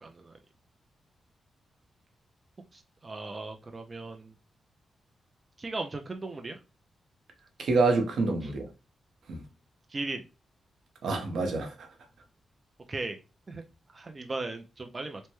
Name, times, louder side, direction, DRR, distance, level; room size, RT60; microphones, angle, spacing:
voice 1, 0.0-0.3 2.7-4.3 5.6-6.6 9.9-10.2 12.9-13.2 13.5-13.6 13.9-15.2, right 3 dB, 30° right, 0.4 m, -37 dB
voice 2, 7.6-8.7 9.3-9.4 11.0-11.9, right 3 dB, 75° right, 0.8 m, -27 dB
3.1 x 2.1 x 2.9 m
cardioid pair, 105°, 0 cm